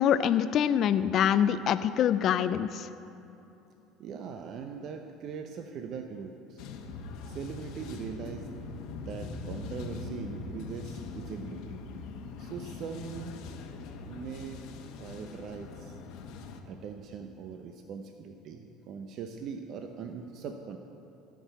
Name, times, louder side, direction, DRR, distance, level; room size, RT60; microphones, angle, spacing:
voice 1, 0.0-2.9, left 9 dB, 50° left, 12 dB, 0.4 m, -25 dB
voice 2, 4.0-6.7 7.2-8.5 9.1-11.8 12.4-13.5 14.0-14.6 15.0-16.0 16.7-20.8, right 6 dB, 55° right, 5 dB, 0.7 m, -41 dB
sound 1, 6.6-16.6, left 4 dB, 70° left, 1.0 m, -42 dB
14.0 x 6.1 x 8.1 m, 2.9 s
supercardioid pair, 100°, 0 cm